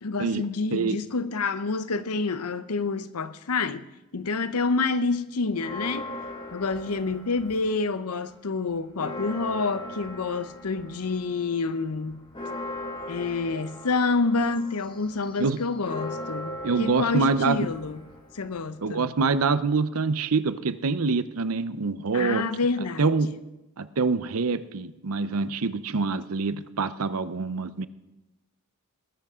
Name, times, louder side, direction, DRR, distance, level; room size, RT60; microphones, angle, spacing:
voice 1, 0.0-3.9 4.1-6.1 6.5-12.2 13.1-18.0 18.3-19.1 22.1-23.4, left 4 dB, 90° left, 0.8 m, -28 dB
Church bell, 5.5-7.9 8.3-8.4 8.7-18.8, left 1 dB, 20° left, 1.6 m, -39 dB
voice 2, 16.6-17.6 18.8-22.5 23.0-23.3 23.8-27.9, right 4 dB, 75° right, 0.7 m, -25 dB
20.0 x 13.5 x 3.7 m
head